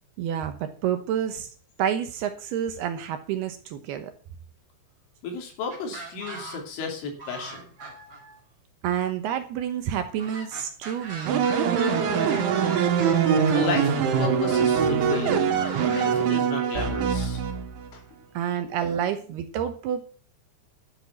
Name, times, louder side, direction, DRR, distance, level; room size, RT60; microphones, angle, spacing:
voice 1, 0.2-1.5 1.8-4.1 8.8-11.6 18.3-20.0, right 9 dB, 75° right, 8 dB, 2.6 m, -29 dB
voice 2, 5.2-7.7 13.5-15.6 15.9-17.4 17.9-18.0, left 4 dB, 85° left, 3 dB, 5.3 m, -33 dB
sound 1, 5.7-6.9 7.2-8.4 10.2-13.8 15.1-16.1, right 3 dB, 30° right, 4.4 m, -39 dB
sound 2, 11.3-17.9, right 7 dB, 90° right, 4.2 m, -23 dB
12.5 x 7.5 x 7.1 m, 0.41 s
omnidirectional pair, 5.4 m